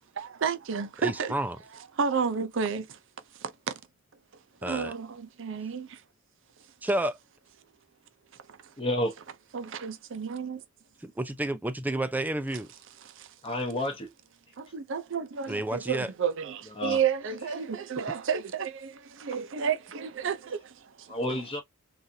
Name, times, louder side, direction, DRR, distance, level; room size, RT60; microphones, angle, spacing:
voice 1, 0.2-1.3 2.0-3.0 3.4-3.7 4.6-6.0 8.5-8.6 9.5-10.6 13.0-13.3 14.6-21.1, right 6 dB, 60° right, 0.5 m, -31 dB
voice 2, 1.0-1.6 4.6-4.9 6.8-7.2 11.0-12.7 15.5-16.1, right 1 dB, 10° right, 0.3 m, -30 dB
voice 3, 8.8-9.2 13.4-14.1 16.8-17.0 21.1-21.6, left 1 dB, 25° left, 0.8 m, -30 dB
3.8 x 2.5 x 2.7 m
head